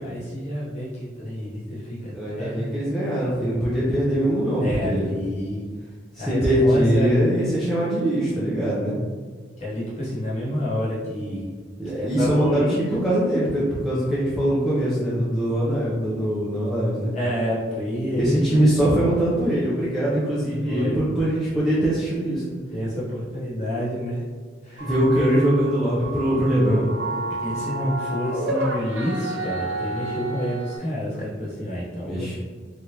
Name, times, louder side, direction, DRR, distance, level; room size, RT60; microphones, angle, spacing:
voice 1, 0.0-2.6 4.5-5.7 6.2-7.4 9.6-11.4 11.8-12.8 17.1-18.7 20.6-21.0 22.7-24.2 24.6-25.3 27.4-32.3, equal, 35° left, -8 dB, 1.0 m, -28 dB
voice 2, 2.1-5.1 6.1-9.0 11.8-17.1 18.2-22.4 24.8-26.9 32.0-32.3, right 1 dB, ahead, -9 dB, 0.4 m, -22 dB
sound 1, 24.8-30.8, right 2 dB, 65° right, 0.5 m, -30 dB
3.2 x 2.4 x 2.8 m, 1.5 s
head